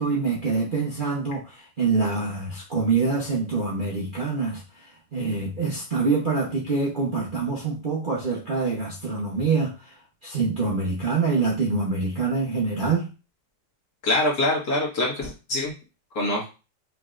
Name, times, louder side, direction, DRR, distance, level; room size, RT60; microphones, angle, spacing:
voice 1, 0.0-4.6 5.1-9.7 10.2-13.1, right 4 dB, 35° right, -5 dB, 0.9 m, -25 dB
voice 2, 14.0-15.7 16.2-16.5, left 1 dB, 55° left, -5 dB, 2.2 m, -24 dB
5.4 x 3.4 x 2.5 m, 0.31 s
omnidirectional pair, 2.0 m